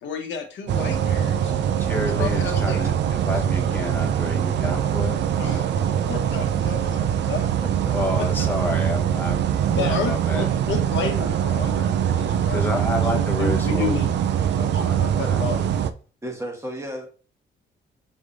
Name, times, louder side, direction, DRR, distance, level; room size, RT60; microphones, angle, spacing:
voice 1, 0.0-1.5 1.9-2.8 5.4-7.4 8.2-8.3 9.7-14.1 14.6-15.6, left 5 dB, 70° left, 1.1 m, -31 dB
sound 1, 0.7-15.9, right 9 dB, 60° right, 0.4 m, -23 dB
voice 2, 1.8-5.2 7.9-10.5 12.5-13.9 14.8-15.0 15.3-15.4, left 2 dB, 10° left, 1.0 m, -30 dB
voice 3, 7.4-8.4 16.2-17.1, right 1 dB, 15° right, 1.1 m, -35 dB
5.3 x 3.2 x 2.5 m
cardioid pair, 90°, 20 cm